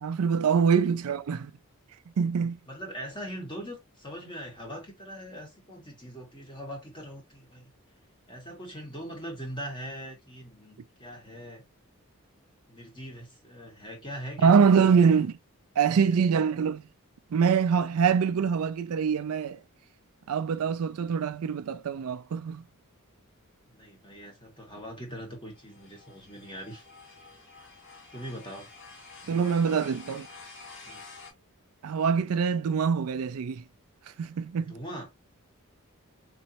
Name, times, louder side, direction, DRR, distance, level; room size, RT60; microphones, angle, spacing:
voice 1, 0.0-1.5 2.2-2.6 14.4-15.3 15.8-16.8 17.3-19.6 20.3-22.6 29.3-30.3 31.8-33.6 34.2-34.7, right 6 dB, 80° right, 0.4 m, -24 dB
voice 2, 2.7-7.7 8.3-11.6 12.7-14.7 23.7-26.8 28.1-28.7 30.8-31.0 34.7-35.1, equal, 20° left, 1.6 m, -41 dB
sound 1, 25.5-31.3, left 3 dB, 55° left, 1.4 m, -49 dB
3.9 x 3.1 x 2.8 m
head